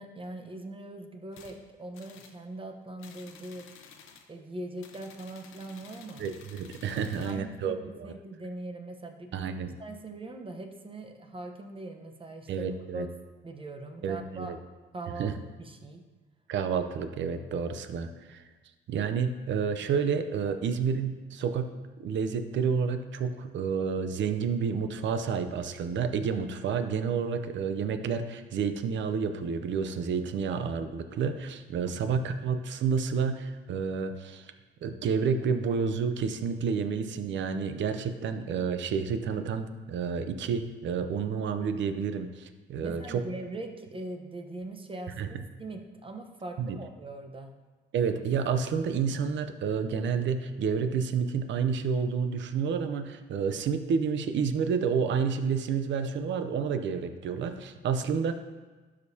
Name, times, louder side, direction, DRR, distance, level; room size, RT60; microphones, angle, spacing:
voice 1, 0.0-3.7 4.3-6.3 7.1-9.5 9.8-12.7 12.9-13.1 13.4-14.5 14.9-16.0 19.8-19.9 31.8-32.2 42.8-47.5, right 2 dB, 25° right, 4 dB, 0.9 m, -41 dB
sound 1, 1.3-1.6 1.9-2.4 3.0-4.3 4.8-7.4, left 6 dB, 80° left, 0.8 m, -53 dB
voice 2, 6.2-8.1 9.3-9.8 12.5-13.1 14.0-14.6 15.2-15.3 16.5-18.4 18.9-21.7 22.0-34.5 34.8-43.2 45.2-45.3 46.6-46.8 47.9-58.3, right 6 dB, 70° right, 9 dB, 0.7 m, -30 dB
12.5 x 5.2 x 2.8 m, 1.3 s
cardioid pair, 90°, 20 cm